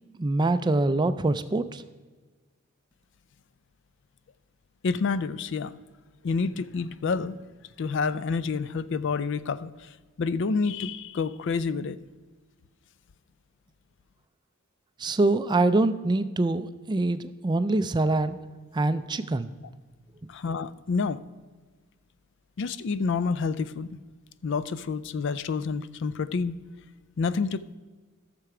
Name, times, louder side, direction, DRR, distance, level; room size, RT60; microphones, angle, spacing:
voice 1, 0.2-1.8 15.0-18.4 18.7-19.5, right 2 dB, 20° right, 12 dB, 0.3 m, -24 dB
voice 2, 4.8-5.7 6.2-7.4 7.8-9.9 10.2-12.0 20.3-21.2 22.6-24.0 24.4-26.6 27.2-27.8, left 4 dB, 55° left, 15 dB, 0.4 m, -28 dB
13.0 x 6.8 x 4.8 m, 1.4 s
head